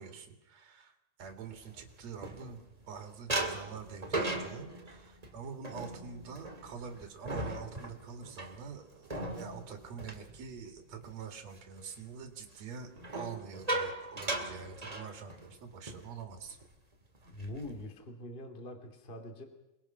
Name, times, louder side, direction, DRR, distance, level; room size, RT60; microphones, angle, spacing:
voice 1, 0.0-16.6, right 6 dB, 50° right, 4 dB, 3.5 m, -46 dB
sound 1, 1.4-2.8 3.3-11.1 11.5-11.8 13.0-15.6 15.9-16.1 16.4-16.7 17.1-17.8, right 2 dB, 20° right, 1.2 m, -38 dB
voice 2, 17.2-19.4, left 1 dB, 20° left, 4 dB, 2.4 m, -44 dB
28.5 x 21.5 x 5.9 m, 0.95 s
omnidirectional pair, 4.1 m